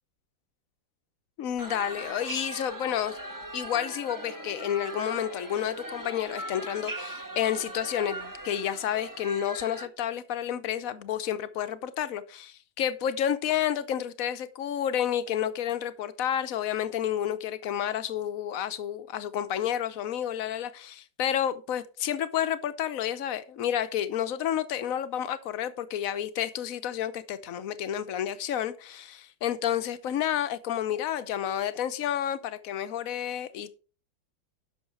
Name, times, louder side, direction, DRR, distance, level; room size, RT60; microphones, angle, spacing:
voice 1, 1.4-3.2 3.5-33.7, left 10 dB, 55° left, 1.1 m, -30 dB
sound 1, 1.6-9.9, right 1 dB, 10° right, 1.1 m, -39 dB
11.0 x 6.5 x 4.7 m
omnidirectional pair, 2.1 m